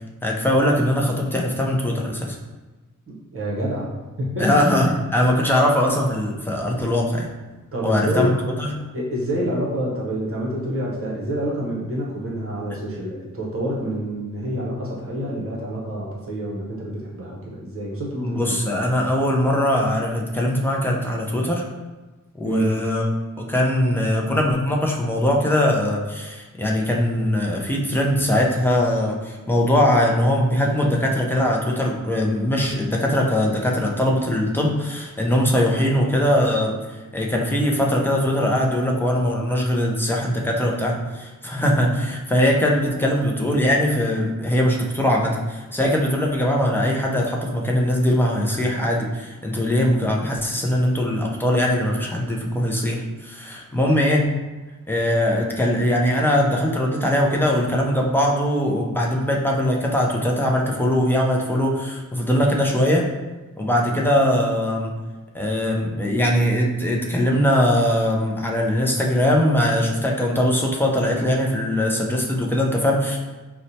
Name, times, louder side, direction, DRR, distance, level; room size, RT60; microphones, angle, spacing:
voice 1, 0.2-2.4 4.4-7.3 7.8-8.7 18.2-21.6 22.4-23.1 23.4-54.2 54.9-63.1 63.6-64.9 65.3-73.2, left 1 dB, 5° left, -2 dB, 0.3 m, -21 dB
voice 2, 3.1-4.7 7.7-8.3 8.9-18.6 22.4-22.7, right 1 dB, 45° right, -4 dB, 0.7 m, -27 dB
4.2 x 2.1 x 2.7 m, 1.2 s
wide cardioid pair, 175°, 33 cm